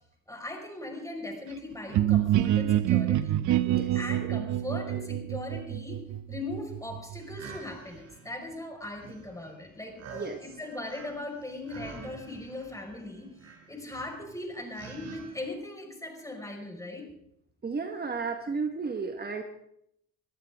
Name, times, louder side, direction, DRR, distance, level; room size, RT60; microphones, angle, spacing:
voice 1, 0.3-3.4 3.9-6.0 6.3-17.1, left 2 dB, 10° left, 1 dB, 5.4 m, -39 dB
sound 1, 1.9-7.6, right 12 dB, 75° right, 0.9 m, -27 dB
voice 2, 3.6-4.3 10.1-10.4 17.6-19.4, right 4 dB, 30° right, 5 dB, 1.6 m, -34 dB
sound 2, 7.2-15.5, right 4 dB, 60° right, 4.3 m, -48 dB
22.5 x 14.5 x 3.7 m, 0.74 s
cardioid pair, 90°, 30 cm